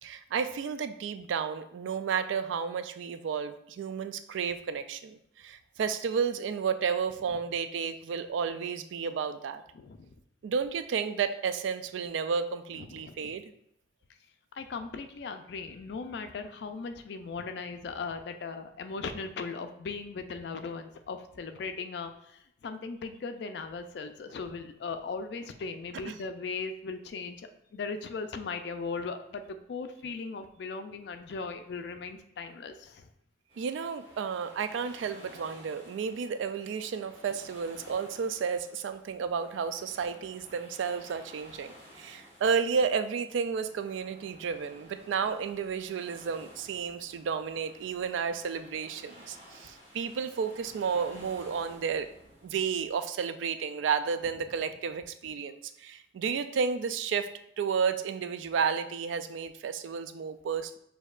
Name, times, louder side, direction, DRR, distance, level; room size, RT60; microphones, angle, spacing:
voice 1, 0.0-9.6 10.4-13.5 26.1-26.2 33.6-52.1 52.4-60.8, right 6 dB, 85° right, 11 dB, 0.3 m, -32 dB
voice 2, 9.7-10.1 12.8-13.3 14.5-27.4 27.7-33.1, left 4 dB, 65° left, 8 dB, 0.3 m, -38 dB
sound 1, 33.5-52.9, equal, 30° right, 1.4 m, -54 dB
6.3 x 2.7 x 2.4 m, 0.72 s
head